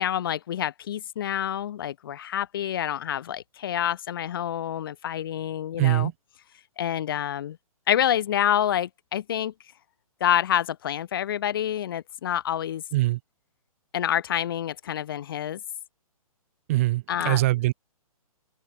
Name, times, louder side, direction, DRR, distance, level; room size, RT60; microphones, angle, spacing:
voice 1, 0.0-6.1 6.8-7.6 7.9-9.5 10.2-12.8 13.9-15.6 17.1-17.4, left 10 dB, 40° left, 0.6 m, -27 dB
voice 2, 5.8-6.1 12.9-13.2 16.7-17.7, right 18 dB, 25° right, 0.4 m, -22 dB
figure-of-eight pair, 125°, 19 cm